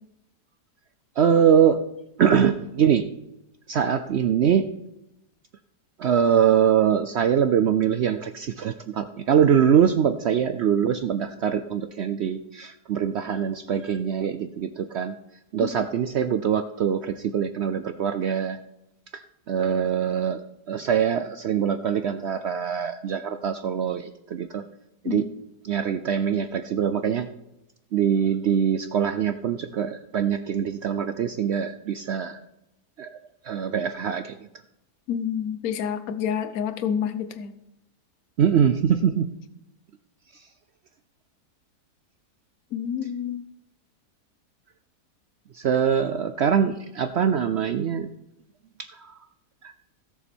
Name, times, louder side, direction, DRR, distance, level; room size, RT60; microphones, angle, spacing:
voice 1, 1.2-1.8 2.2-3.1 3.7-4.6 6.0-15.2 15.5-18.6 19.1-19.2 19.5-20.4 20.7-24.6 25.0-25.2 25.6-27.3 27.9-32.4 33.0-33.1 33.4-34.4 38.4-39.3 45.5-48.1 48.9-49.2 49.6-49.7, right 8 dB, 75° right, 10 dB, 0.6 m, -23 dB
voice 2, 35.1-37.5 42.7-43.4, left 8 dB, 65° left, 10 dB, 1.3 m, -28 dB
16.5 x 6.9 x 4.4 m, 0.87 s
omnidirectional pair, 1.7 m